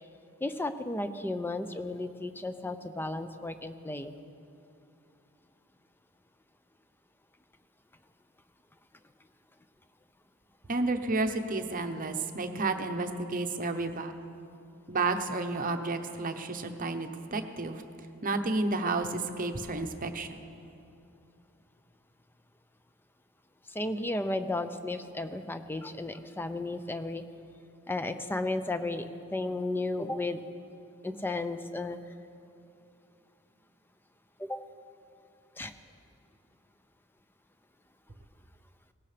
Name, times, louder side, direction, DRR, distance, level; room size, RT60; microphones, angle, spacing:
voice 1, 0.4-4.1 23.7-27.2 27.9-30.4 31.0-32.0 34.4-34.6 35.6-35.7, left 2 dB, 10° left, 9 dB, 0.5 m, -34 dB
voice 2, 10.7-14.1 14.9-17.8 18.2-20.4, right 3 dB, 40° right, 7 dB, 0.8 m, -31 dB
18.0 x 17.5 x 3.3 m, 2.6 s
head